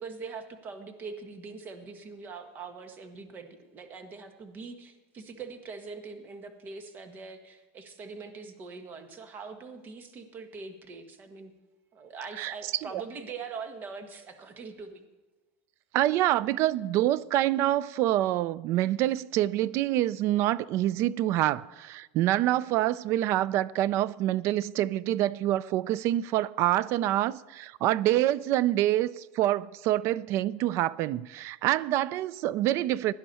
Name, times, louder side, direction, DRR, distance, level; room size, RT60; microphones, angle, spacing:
voice 1, 0.0-11.5 11.9-15.1, right 4 dB, 30° right, 1.4 m, -42 dB
voice 2, 12.3-13.0 15.9-33.1, right 14 dB, 45° right, 0.4 m, -26 dB
16.5 x 10.5 x 4.2 m
supercardioid pair, 145°, 6 cm